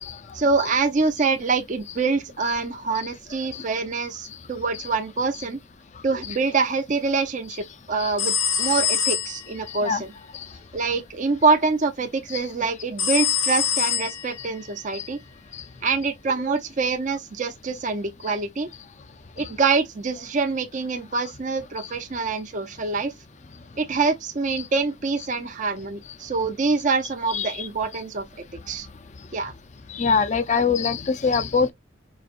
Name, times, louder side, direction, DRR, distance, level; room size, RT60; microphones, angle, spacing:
voice 1, 0.3-5.6 6.0-10.1 10.7-15.2 15.8-18.7 19.4-23.1 23.8-28.2 28.7-28.9 29.3-29.5, right 4 dB, 40° right, 0.6 m, -25 dB
sound 1, 8.2-9.6 13.0-14.6, left 8 dB, 80° left, 0.9 m, -24 dB
voice 2, 27.3-27.7 30.0-31.7, left 5 dB, 35° left, 0.5 m, -22 dB
4.9 x 2.8 x 2.5 m
head